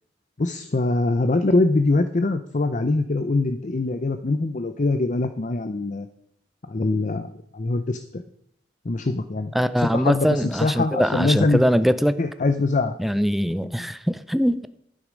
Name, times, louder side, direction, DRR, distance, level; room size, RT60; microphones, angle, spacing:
voice 1, 0.4-6.1 6.7-8.2 8.8-11.6 12.2-13.0 13.6-13.9, left 2 dB, 45° left, 9 dB, 0.6 m, -23 dB
voice 2, 9.5-12.2 13.0-14.7, equal, ahead, 13 dB, 0.4 m, -22 dB
11.5 x 9.5 x 5.1 m, 0.73 s
head